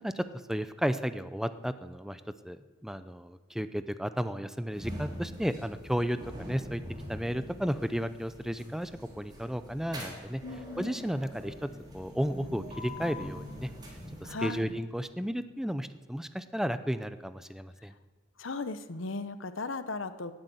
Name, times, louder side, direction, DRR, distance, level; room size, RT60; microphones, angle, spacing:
voice 1, 0.0-6.8 7.1-8.9 9.2-10.4 10.8-11.7 11.9-13.7 14.2-17.9, equal, ahead, 11 dB, 0.7 m, -33 dB
sound 1, 4.7-14.9, left 1 dB, 20° right, 4.0 m, -44 dB
voice 2, 10.4-11.1 14.2-14.7 18.4-20.3, left 3 dB, 90° left, 11 dB, 1.0 m, -37 dB
18.5 x 9.8 x 8.0 m, 1.4 s
head